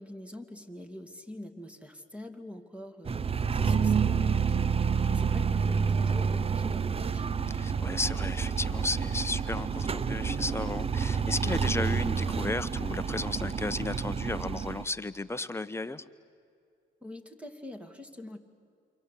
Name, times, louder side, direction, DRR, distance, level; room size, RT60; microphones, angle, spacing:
voice 1, 0.0-7.5 17.0-18.4, left 1 dB, 5° right, 6 dB, 2.5 m, -45 dB
sound 1, 3.0-14.8, right 6 dB, 30° right, 0.7 m, -29 dB
voice 2, 7.6-16.0, left 2 dB, 15° left, 11 dB, 1.0 m, -34 dB
28.0 x 25.0 x 8.5 m, 2.4 s
cardioid pair, 90°, 20 cm